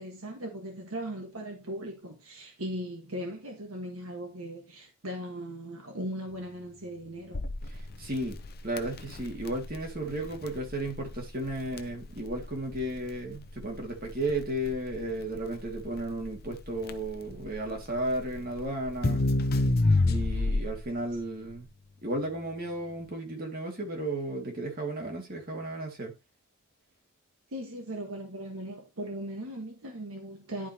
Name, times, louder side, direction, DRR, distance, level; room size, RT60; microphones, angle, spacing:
voice 1, 0.0-7.5 27.5-30.7, right 1 dB, 70° right, 1.6 m, -38 dB
Crackle, 7.3-20.9, left 2 dB, 45° left, 0.7 m, -30 dB
voice 2, 7.7-8.4 8.6-19.2 20.0-21.7 22.0-26.1, right 1 dB, 40° right, 2.2 m, -34 dB
11.0 x 4.9 x 2.9 m
head